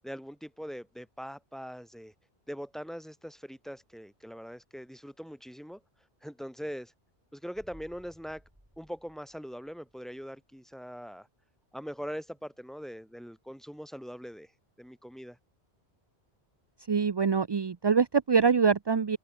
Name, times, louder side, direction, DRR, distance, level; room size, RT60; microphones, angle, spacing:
voice 1, 0.0-2.1 2.5-5.8 6.2-6.9 7.3-8.4 8.8-11.3 11.7-14.5 14.8-15.4, equal, ahead, 3.9 m, -42 dB
sound 1, 7.5-10.2 10.5-10.6, equal, 15° right, 6.7 m, -59 dB
voice 2, 16.9-19.2, right 6 dB, 35° right, 0.4 m, -24 dB
omnidirectional pair, 1.1 m